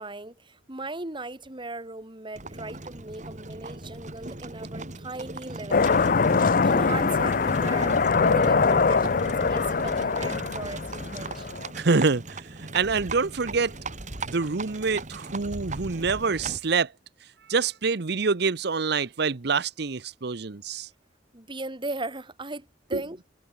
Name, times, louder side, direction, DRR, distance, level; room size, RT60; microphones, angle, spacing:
voice 1, 0.0-6.1 6.6-11.7 21.3-23.2, right 2 dB, 25° right, 2.8 m, -37 dB
Livestock farm animals working animals, 2.4-16.7, right 2 dB, 40° right, 3.6 m, -38 dB
sound 1, 5.7-11.7, left 4 dB, 50° left, 0.6 m, -23 dB
voice 2, 11.7-13.8 14.2-16.9 17.5-20.9 22.9-23.0, right 4 dB, 65° right, 0.8 m, -26 dB
head